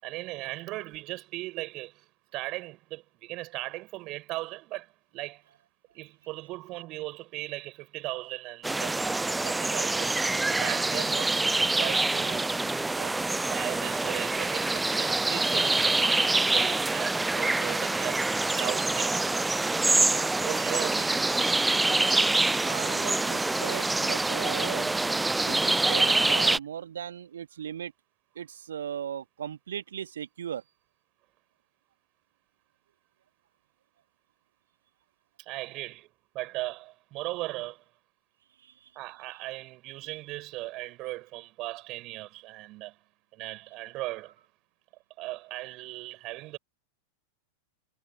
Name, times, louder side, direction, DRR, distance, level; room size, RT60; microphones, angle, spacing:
voice 1, 0.0-5.4 5.9-9.1 9.4-12.6 13.0-18.2 18.5-19.3 20.4-21.4 35.4-36.1 36.3-37.8 38.9-43.0 43.3-44.4 45.2-46.6, right 19 dB, 40° right, 5.9 m, -38 dB
sound 1, 8.6-26.6, right 2 dB, 5° right, 0.4 m, -26 dB
voice 2, 22.6-24.9 25.4-27.9 28.3-30.6 38.6-38.9, right 9 dB, 65° right, 1.6 m, -38 dB
figure-of-eight pair, 90°, 0 cm